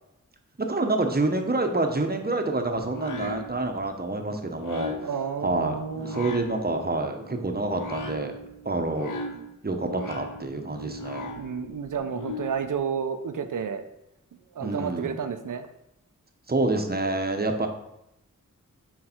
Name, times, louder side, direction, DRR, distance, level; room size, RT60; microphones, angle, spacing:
voice 1, 0.6-4.9 5.4-8.4 8.6-9.2 9.6-11.3 14.6-15.2 16.5-17.7, right 2 dB, 30° right, 5 dB, 1.0 m, -27 dB
sound 1, 2.7-12.7, left 2 dB, 85° left, 0.9 m, -39 dB
voice 2, 5.0-6.3 11.4-13.8 14.5-15.7, right 7 dB, 85° right, 8 dB, 0.7 m, -31 dB
6.5 x 4.6 x 4.5 m, 0.85 s
wide cardioid pair, 60°, 31 cm